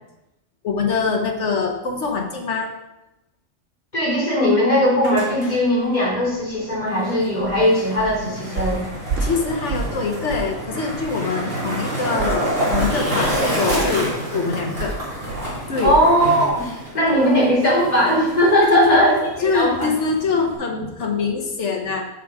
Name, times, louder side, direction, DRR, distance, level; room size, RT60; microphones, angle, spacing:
voice 1, 0.6-2.7 9.2-15.0 15.7-15.9 18.6-19.0 19.4-22.1, left 4 dB, 70° left, 3 dB, 1.6 m, -24 dB
voice 2, 3.9-8.8 15.8-16.7 16.9-19.9, equal, 35° left, -8 dB, 3.4 m, -18 dB
Skateboard, 4.8-20.6, equal, 50° right, 3.3 m, -28 dB
sound 1, 7.4-7.6 8.0-8.2 8.6-10.0 10.3-10.6 10.9-11.1 12.2-16.2 16.5-16.7 17.1-17.2, right 4 dB, 80° right, 1.3 m, -29 dB
7.6 x 6.5 x 4.9 m, 0.92 s
omnidirectional pair, 1.3 m